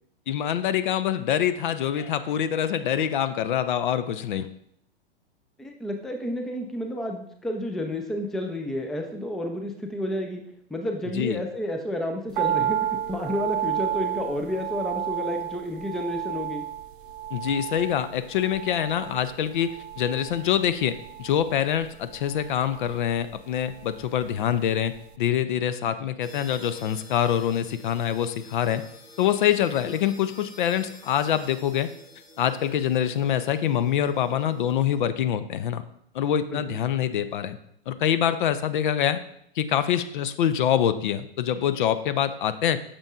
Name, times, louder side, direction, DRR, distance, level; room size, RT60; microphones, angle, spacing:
voice 1, 0.3-4.5 11.2-11.4 17.3-28.8 29.2-31.9 32.4-35.8 36.1-37.6 37.9-39.2 39.6-42.8, left 10 dB, 55° left, 13 dB, 0.5 m, -25 dB
voice 2, 5.6-10.4 10.7-16.6 36.5-36.8, left 1 dB, ahead, 4 dB, 0.4 m, -31 dB
sound 1, 12.3-24.6 24.9-25.0, right 11 dB, 55° right, 0.5 m, -32 dB
sound 2, 26.2-35.0, left 1 dB, 85° left, 1.4 m, -49 dB
8.7 x 6.7 x 2.4 m, 0.70 s
figure-of-eight pair, 105°, 31 cm